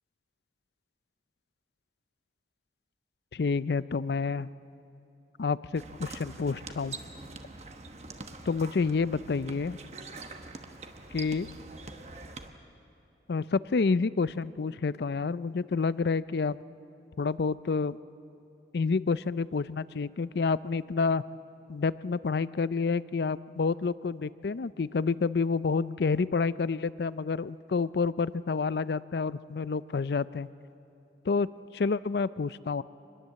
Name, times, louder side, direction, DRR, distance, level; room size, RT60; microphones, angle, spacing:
voice 1, 3.3-4.5 5.4-7.0 8.5-9.8 11.1-11.5 13.3-16.6 17.2-18.0 18.7-21.2 21.7-30.5 31.3-31.5 31.7-32.8, left 4 dB, 70° left, 17 dB, 0.4 m, -29 dB
sound 1, 5.7-12.5, right 3 dB, 40° right, 1.1 m, -44 dB
25.0 x 21.0 x 7.6 m, 2.9 s
head